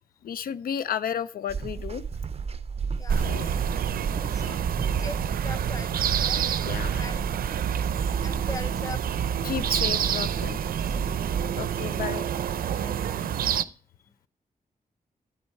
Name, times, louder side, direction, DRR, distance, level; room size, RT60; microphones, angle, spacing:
voice 1, 0.2-2.0 3.1-3.5 6.6-7.1 9.4-10.6 11.6-12.3, left 8 dB, 80° left, 16 dB, 0.4 m, -32 dB
sound 1, 1.5-11.8, right 5 dB, 45° right, 0.6 m, -33 dB
sound 2, 3.1-13.6, right 9 dB, 90° right, 0.5 m, -28 dB
voice 2, 4.2-4.6 5.0-5.2 5.4-5.9 6.2-6.5 7.0-7.2 8.2-9.0 10.6-11.1 12.8-13.0, left 2 dB, 20° left, 16 dB, 0.6 m, -40 dB
9.5 x 8.8 x 4.5 m, 0.38 s
cardioid pair, 65°, 15 cm